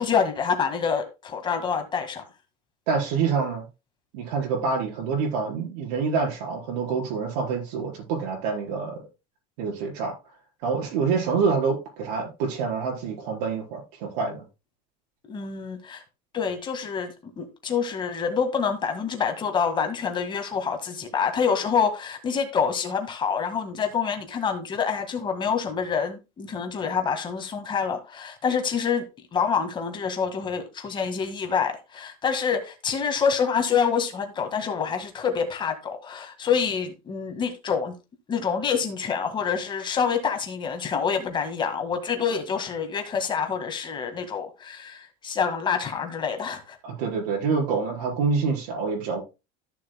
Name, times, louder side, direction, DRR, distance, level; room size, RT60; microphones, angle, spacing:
voice 1, 0.0-2.2 15.3-16.0 16.3-29.0 29.3-37.9 38.3-46.8, left 6 dB, 25° left, 1.7 m, -27 dB
voice 2, 2.9-3.7 4.1-9.0 9.6-10.1 10.6-14.4 46.8-49.2, right 5 dB, 85° right, 4.7 m, -26 dB
14.0 x 6.7 x 2.2 m
cardioid pair, 155°, 20 cm